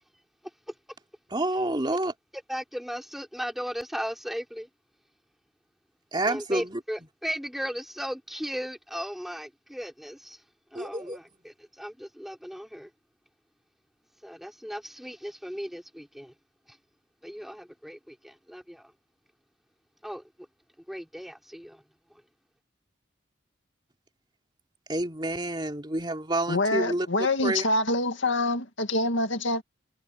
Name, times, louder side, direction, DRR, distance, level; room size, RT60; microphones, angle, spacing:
voice 1, 1.3-2.1 6.1-6.8 10.7-11.2 24.9-27.6, right 1 dB, 25° right, 2.9 m, -28 dB
voice 2, 2.3-4.7 6.2-10.4 10.7-12.9 14.2-16.3 16.7-16.8 17.2-18.9 20.0-20.5 20.8-21.8 22.1-22.2, equal, ahead, 3.4 m, -37 dB
voice 3, 26.5-29.6, left 2 dB, 75° left, 2.1 m, -26 dB
head